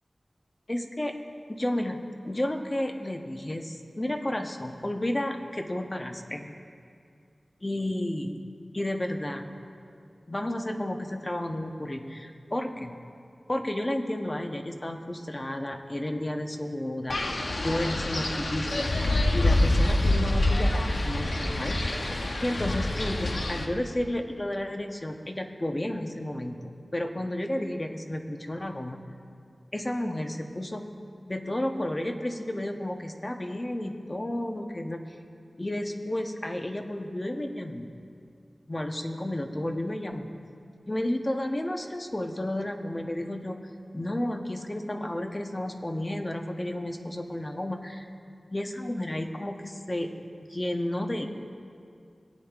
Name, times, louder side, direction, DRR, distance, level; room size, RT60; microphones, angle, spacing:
voice 1, 0.7-1.1 1.5-6.6 7.6-8.4 8.7-9.5 10.3-13.0 13.5-18.9 19.3-21.8 22.4-29.1 29.7-30.9 31.3-35.2 35.6-37.9 38.7-40.3 40.9-43.6 43.9-48.1 48.5-50.1 50.4-51.3, left 1 dB, 30° left, 4 dB, 0.8 m, -32 dB
Wind, 17.1-23.7, left 1 dB, 70° left, 0.8 m, -26 dB
18.5 x 8.6 x 2.4 m, 2.3 s
wide cardioid pair, 50°, 0 cm